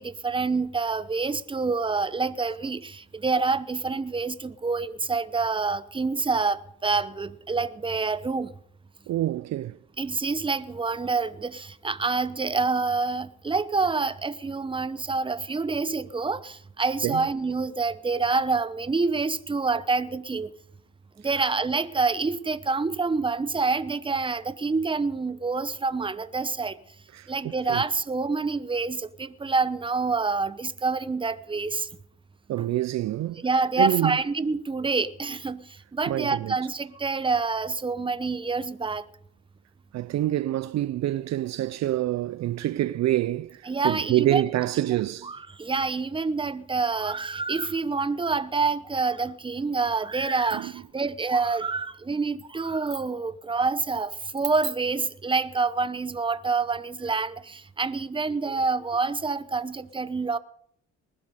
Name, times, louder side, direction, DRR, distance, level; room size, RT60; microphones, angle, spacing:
voice 1, 0.0-8.5 10.0-20.5 21.2-26.7 27.3-31.9 33.4-39.0 43.7-44.4 45.2-60.4, right 4 dB, 15° right, 0.8 m, -27 dB
voice 2, 9.1-9.8 17.0-17.3 27.1-27.3 27.7-27.8 32.5-33.4 33.8-34.2 36.1-36.5 39.9-45.3 50.5-50.7, right 14 dB, 60° right, 0.5 m, -26 dB
20.0 x 11.5 x 5.0 m
cardioid pair, 90°, 30 cm